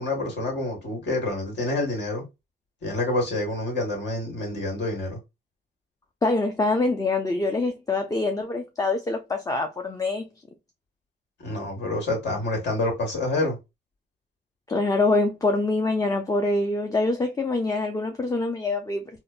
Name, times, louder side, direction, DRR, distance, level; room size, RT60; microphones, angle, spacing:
voice 1, 0.0-2.2 2.8-5.2 11.4-13.6, left 2 dB, 60° left, 1.6 m, -27 dB
voice 2, 6.2-10.3 14.7-19.0, left 2 dB, 15° left, 0.5 m, -25 dB
3.7 x 2.1 x 2.3 m
cardioid pair, 90°, 20 cm